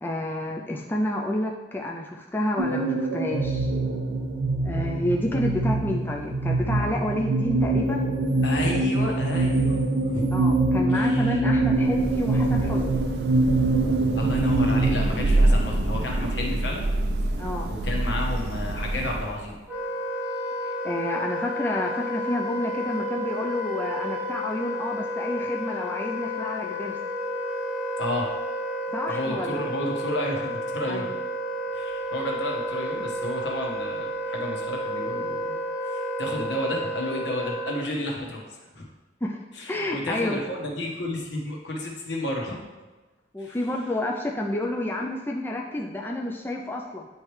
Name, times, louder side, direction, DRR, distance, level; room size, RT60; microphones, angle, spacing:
voice 1, 0.0-3.7 4.6-8.1 10.3-13.0 17.4-17.7 20.6-27.0 28.9-29.7 30.9-31.1 39.2-39.4 39.7-40.4 43.3-47.1, left 1 dB, 10° left, -1 dB, 0.4 m, -29 dB
sound 1, 2.6-15.1, right 2 dB, 90° right, 1.0 m, -24 dB
voice 2, 8.4-10.2 10.9-11.4 14.1-16.8 17.7-19.6 28.0-28.3 29.1-31.1 31.7-38.4 38.7-38.8 39.6-42.6 43.4-43.6, left 1 dB, 75° left, -1 dB, 1.3 m, -31 dB
Thunder / Rain, 11.6-19.6, right 1 dB, 60° right, 0.5 m, -27 dB
Wind instrument woodwind instrument, 19.7-37.9, equal, 10° right, 0.9 m, -31 dB
9.5 x 3.2 x 3.2 m, 1.2 s
head